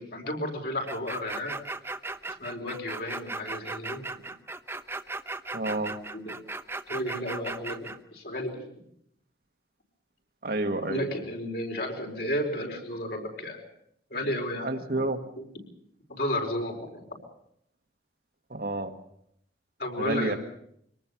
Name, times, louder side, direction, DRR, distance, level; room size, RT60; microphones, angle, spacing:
voice 1, 0.0-1.6 2.4-4.0 6.1-6.3 6.9-8.7 10.8-13.6 14.1-15.0 15.4-15.5 16.1-17.0 19.8-20.4, left 1 dB, 60° left, 2 dB, 4.7 m, -33 dB
sound 1, 0.9-8.0, right 3 dB, 15° right, 0.8 m, -37 dB
voice 2, 5.5-6.0 10.4-11.1 14.6-15.2 18.5-18.9 20.0-20.4, right 2 dB, 55° right, 6 dB, 1.6 m, -29 dB
24.0 x 18.5 x 7.1 m, 0.72 s
head